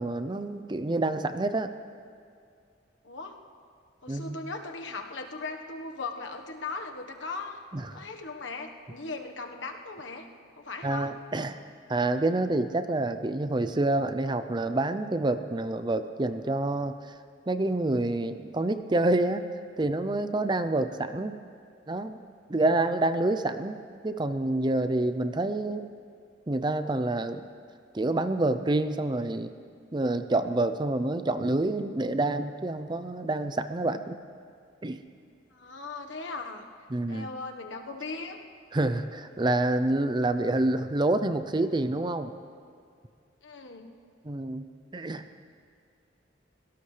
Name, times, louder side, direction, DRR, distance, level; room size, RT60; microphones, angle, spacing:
voice 1, 0.0-1.7 4.1-4.4 7.7-8.0 10.8-11.6 11.9-17.2 17.5-19.4 19.8-21.4 21.9-22.2 22.5-23.8 24.0-25.9 26.5-27.5 27.9-29.5 29.9-34.2 34.8-35.0 36.9-37.3 38.7-42.3 44.2-45.2, right 2 dB, 25° right, 10 dB, 0.5 m, -27 dB
voice 2, 4.0-7.6 7.9-10.3 10.6-11.1 35.5-36.6 37.1-38.4 43.4-44.0, left 3 dB, 75° left, 4 dB, 1.3 m, -38 dB
25.5 x 17.0 x 3.3 m, 2.3 s
head